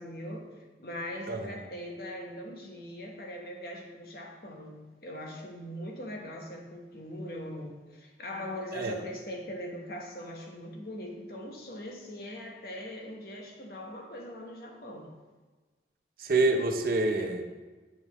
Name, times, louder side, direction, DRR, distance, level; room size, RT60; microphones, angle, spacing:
voice 1, 0.0-15.1, equal, 55° left, 1 dB, 1.0 m, -41 dB
voice 2, 16.2-17.4, right 2 dB, 50° right, 4 dB, 0.6 m, -27 dB
8.1 x 5.2 x 3.0 m, 1.3 s
head